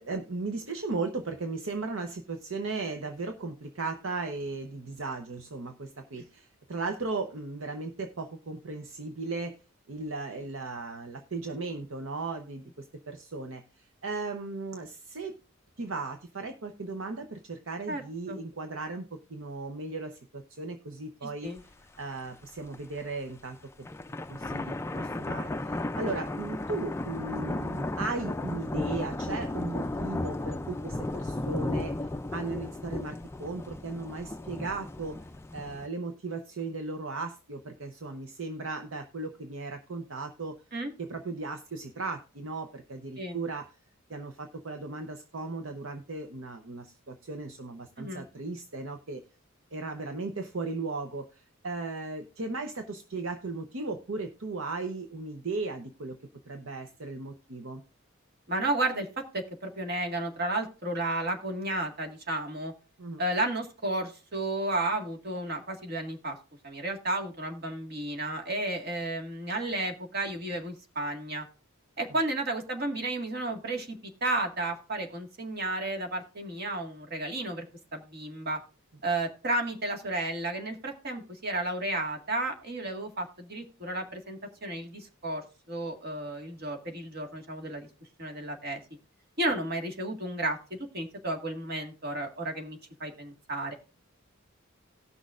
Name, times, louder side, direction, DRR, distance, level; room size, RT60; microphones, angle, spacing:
voice 1, 0.0-9.5 9.9-15.3 15.8-23.9 24.3-31.9 32.3-35.2 35.5-40.6 41.0-43.7 44.1-49.2 49.7-56.2 56.5-57.8 63.0-63.2, right 3 dB, 65° right, 6 dB, 0.8 m, -36 dB
sound 1, 21.6-21.7 22.0-22.1 22.6-23.0 23.7-35.9, left 2 dB, 10° left, 0.4 m, -34 dB
voice 2, 58.5-59.1 59.3-62.7 63.2-66.4 66.6-71.5 72.0-77.7 77.9-78.6 79.0-87.9 88.2-88.8 89.4-90.6 90.9-93.7, right 2 dB, 50° right, 3 dB, 1.8 m, -32 dB
18.5 x 6.2 x 2.5 m, 0.35 s
head